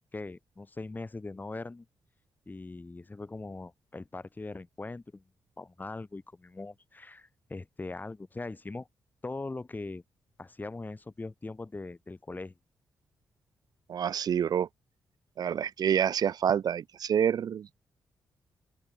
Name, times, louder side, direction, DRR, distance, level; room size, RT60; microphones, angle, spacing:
voice 1, 0.1-1.9 2.5-5.2 5.6-8.9 9.2-10.0 10.4-12.5, left 3 dB, 25° left, 2.4 m, -41 dB
voice 2, 13.9-14.7 15.4-17.7, right 8 dB, 70° right, 1.7 m, -27 dB
open air
cardioid pair, 60°, 7 cm